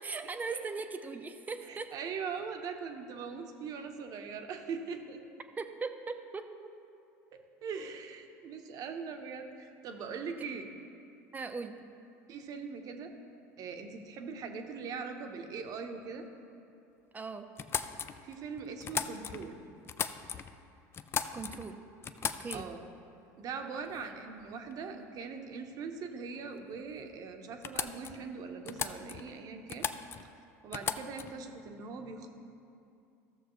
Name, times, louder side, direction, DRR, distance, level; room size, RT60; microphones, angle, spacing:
voice 1, 0.0-1.9 5.6-6.7 10.2-10.4 11.3-11.9 17.1-17.5 21.3-21.9 22.2-22.7, right 4 dB, 20° right, 8 dB, 0.6 m, -40 dB
voice 2, 1.7-5.2 7.6-10.7 12.3-13.1 13.6-16.3 18.2-19.6 22.5-22.8 23.4-29.9 30.6-32.3, right 5 dB, 50° right, 5 dB, 0.9 m, -41 dB
sound 1, 17.6-19.5 19.8-20.6 20.9-21.7 22.0-22.9 23.9-24.0 24.4-24.8 26.8-26.9 27.1-27.2 27.6-28.3 28.7-29.4 29.7-30.3 30.7-31.4, left 7 dB, 30° left, 0.4 m, -37 dB
14.0 x 6.6 x 3.1 m, 2.6 s
supercardioid pair, 95°, 8 cm